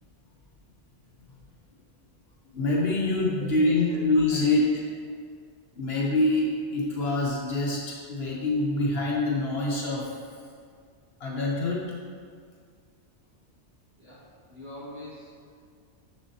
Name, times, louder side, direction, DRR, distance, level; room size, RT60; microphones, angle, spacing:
voice 1, 2.5-4.7 5.8-10.1 11.2-11.9, left 2 dB, 60° left, -3 dB, 1.0 m, -25 dB
voice 2, 3.6-4.0 4.3-4.4 14.0-15.3, left 1 dB, 25° right, -9 dB, 1.8 m, -43 dB
6.7 x 6.5 x 2.7 m, 2.1 s
omnidirectional pair, 1.2 m